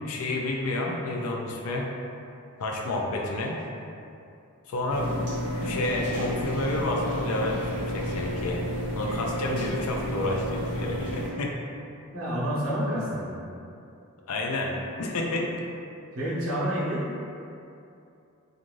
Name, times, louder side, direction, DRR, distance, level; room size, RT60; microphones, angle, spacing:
voice 1, 0.0-1.9 2.6-3.6 4.7-5.1 5.6-8.6 8.9-11.6 14.3-15.5, left 2 dB, 80° left, 0 dB, 0.4 m, -30 dB
sound 1, 4.9-11.3, equal, 50° left, 1.1 m, -31 dB
voice 2, 12.1-13.4 16.1-17.0, equal, 70° right, -7 dB, 0.7 m, -28 dB
2.5 x 2.5 x 3.0 m, 2.6 s
head